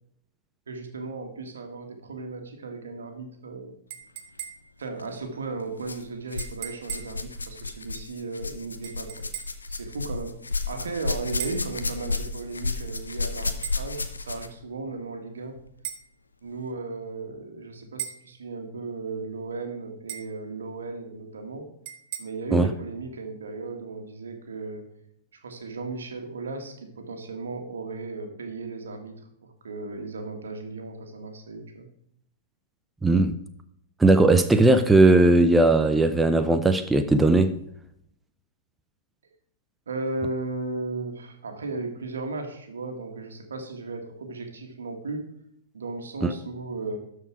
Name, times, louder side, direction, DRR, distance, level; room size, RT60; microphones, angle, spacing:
voice 1, 0.7-3.8 4.8-9.3 9.7-10.3 10.7-15.6 16.4-21.7 22.2-24.8 25.4-29.2 29.4-31.9 39.9-45.3 45.7-47.0, right 3 dB, 75° right, 1.7 m, -35 dB
sound 1, 3.9-4.8 6.4-7.2 8.8-9.7 11.4-11.7 13.6-13.8 15.8-16.1 18.0-18.3 20.1-20.4 21.8-22.2, right 11 dB, 50° right, 1.1 m, -38 dB
sound 2, 4.9-5.1 5.8-6.6 6.8-14.6 15.6-15.7 16.5-16.6, left 3 dB, 85° left, 0.7 m, -32 dB
voice 2, 33.0-33.4 34.0-37.5 46.2-46.3, right 2 dB, 10° right, 0.6 m, -18 dB
12.5 x 4.8 x 4.7 m
figure-of-eight pair, 105°, 0 cm